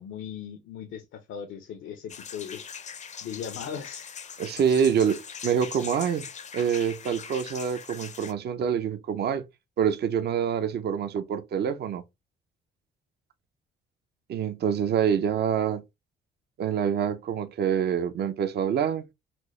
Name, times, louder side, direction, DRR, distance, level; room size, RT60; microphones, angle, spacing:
voice 1, 0.0-2.7 3.2-4.1, left 8 dB, 80° left, 0.6 m, -38 dB
sound 1, 2.1-8.3, left 7 dB, 35° left, 0.5 m, -41 dB
voice 2, 4.4-6.3 6.5-9.4 9.8-12.0 14.3-15.8 16.6-19.0, right 8 dB, 55° right, 0.6 m, -26 dB
4.3 x 2.1 x 3.1 m
cardioid pair, 90°, 20 cm